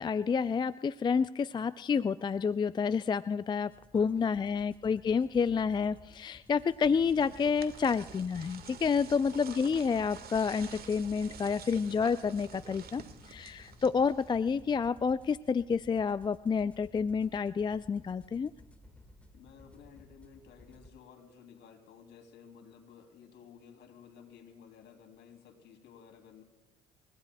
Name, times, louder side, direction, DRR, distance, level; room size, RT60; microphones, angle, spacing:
voice 1, 0.0-13.0 13.3-18.5, left 6 dB, 20° left, 15 dB, 0.4 m, -29 dB
sound 1, 3.7-20.9, left 1 dB, 5° left, 1.7 m, -56 dB
voice 2, 3.9-4.6 9.1-9.5 19.3-26.4, left 7 dB, 55° left, 3 dB, 3.1 m, -55 dB
sound 2, 6.6-14.4, right 6 dB, 45° right, 1.7 m, -49 dB
29.0 x 16.5 x 2.3 m, 1.1 s
hypercardioid pair, 60°, 21 cm